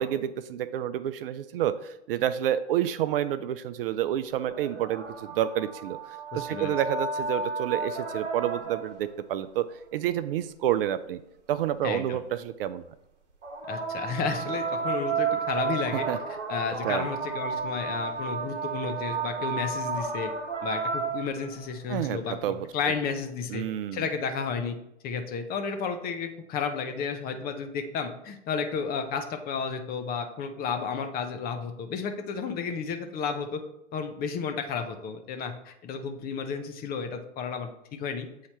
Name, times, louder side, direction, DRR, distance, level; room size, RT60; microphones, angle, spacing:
voice 1, 0.0-11.2 11.5-12.8 15.9-16.2 16.8-17.1 21.9-22.7 23.5-24.0, right 11 dB, 55° right, 13 dB, 0.4 m, -29 dB
sound 1, 4.3-9.1 13.4-21.7 23.0-23.1, right 5 dB, 75° right, 1.2 m, -32 dB
voice 2, 6.3-6.7 11.8-12.2 13.7-16.1 16.5-20.3 20.6-23.6 23.9-24.8 25.0-33.6 33.9-38.3, left 5 dB, 25° left, 7 dB, 0.7 m, -32 dB
8.2 x 2.8 x 4.4 m, 0.82 s
hypercardioid pair, 110°, 35 cm